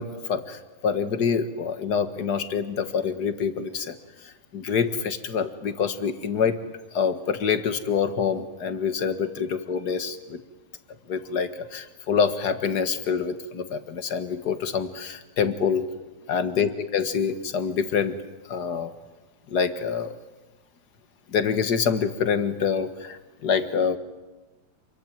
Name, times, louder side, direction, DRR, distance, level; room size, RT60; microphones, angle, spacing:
voice 1, 0.0-4.0 4.2-6.6 6.9-10.4 11.1-15.9 16.3-18.2 18.5-18.9 19.5-20.1 21.3-24.0, left 6 dB, 50° left, 10 dB, 2.0 m, -26 dB
28.0 x 22.5 x 9.2 m, 1.2 s
omnidirectional pair, 2.4 m